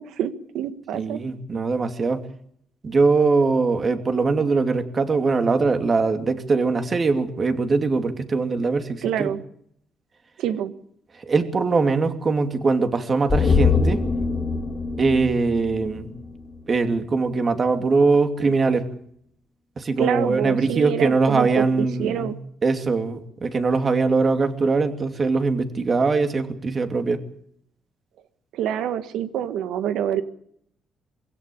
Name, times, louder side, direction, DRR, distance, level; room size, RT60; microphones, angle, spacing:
voice 1, 0.0-1.2 9.0-9.4 10.4-10.7 20.0-22.4 28.5-30.2, right 10 dB, 85° right, 11 dB, 1.7 m, -26 dB
voice 2, 0.9-2.2 2.8-9.3 11.3-14.0 15.0-16.1 16.7-18.9 19.8-22.3 22.6-27.2, right 4 dB, 40° right, 7 dB, 2.7 m, -21 dB
sound 1, 13.3-16.7 17.0-17.1, left 5 dB, 35° left, 3.1 m, -23 dB
23.0 x 16.5 x 8.7 m, 0.69 s
cardioid pair, 90°, 0 cm